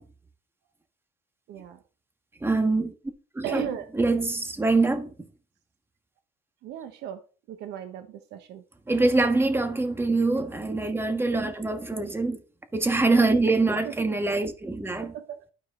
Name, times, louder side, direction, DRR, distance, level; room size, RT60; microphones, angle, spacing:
voice 1, 1.5-1.8 3.4-3.9 6.6-7.2 7.5-8.6 11.9-12.1 13.8-13.9 15.0-15.5, right 9 dB, 80° right, 1.0 m, -36 dB
voice 2, 2.4-2.9 3.3-3.6 4.0-5.1 8.9-12.4 12.7-15.1, right 3 dB, 15° right, 1.4 m, -24 dB
12.0 x 4.8 x 3.7 m
cardioid pair, 110°, 17 cm